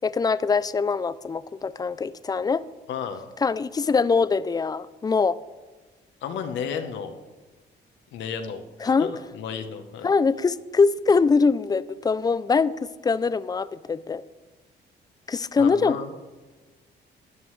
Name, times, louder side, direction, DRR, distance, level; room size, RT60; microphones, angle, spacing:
voice 1, 0.0-2.6 3.4-5.4 8.8-9.1 10.0-14.2 15.3-16.0, left 4 dB, 20° left, 17 dB, 0.3 m, -23 dB
voice 2, 2.9-3.3 6.2-7.2 8.1-9.1 9.3-10.1 15.6-16.1, left 7 dB, 80° left, 7 dB, 1.0 m, -32 dB
13.0 x 9.7 x 3.2 m, 1.3 s
cardioid pair, 100°, 19 cm